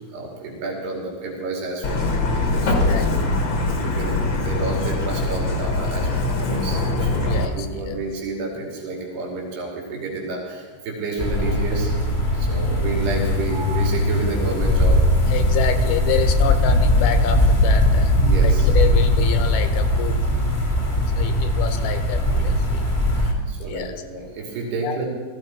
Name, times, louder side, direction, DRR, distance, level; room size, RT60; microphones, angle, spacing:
voice 1, 0.1-2.1 2.4-3.4 3.8-11.9 12.3-15.4 18.2-18.7 23.2-25.0, right 3 dB, 85° right, -1 dB, 4.6 m, -30 dB
Truck, 1.8-7.5, left 2 dB, 50° left, 1.4 m, -22 dB
voice 2, 2.7-3.0 7.2-8.0 15.3-18.2 18.4-20.3 21.1-22.8 23.1-23.9 24.8-25.0, left 8 dB, 80° left, 8 dB, 2.9 m, -28 dB
sound 1, 11.2-23.3, left 1 dB, 20° left, 1.2 m, -19 dB
18.5 x 15.0 x 4.5 m, 1.4 s
omnidirectional pair, 4.5 m